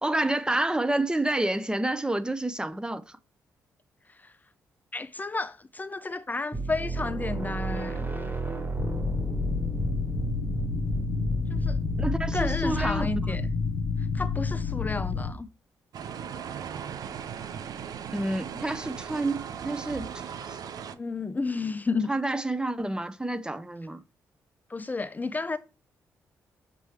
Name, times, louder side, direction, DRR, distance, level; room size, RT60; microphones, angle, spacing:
voice 1, 0.0-3.2 12.0-13.1 18.1-20.6 22.1-24.0, right 2 dB, 10° right, 0.7 m, -29 dB
voice 2, 4.9-8.1 11.5-11.8 12.3-13.5 14.0-15.5 20.9-22.1 24.7-25.6, left 3 dB, 25° left, 0.4 m, -32 dB
sound 1, 6.5-14.0, right 3 dB, 30° right, 0.9 m, -33 dB
sound 2, 8.8-15.3, left 5 dB, 70° left, 0.7 m, -30 dB
sound 3, 15.9-21.0, right 8 dB, 65° right, 0.6 m, -38 dB
6.7 x 3.1 x 4.8 m
supercardioid pair, 50°, 7 cm